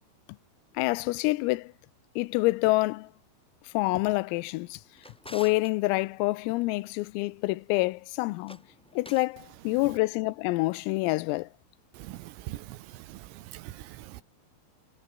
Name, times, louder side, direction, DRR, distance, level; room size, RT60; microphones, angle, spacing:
voice 1, 0.8-1.7 2.2-3.1 3.7-4.8 5.3-8.6 9.0-11.5, left 22 dB, 90° left, 3.4 m, -27 dB
Drawer open or close, 4.5-5.7 8.3-9.4, equal, ahead, 2.8 m, -49 dB
voice 2, 12.0-12.8 13.1-13.2 13.5-14.2, right 16 dB, 90° right, 4.0 m, -41 dB
omnidirectional pair, 6.0 m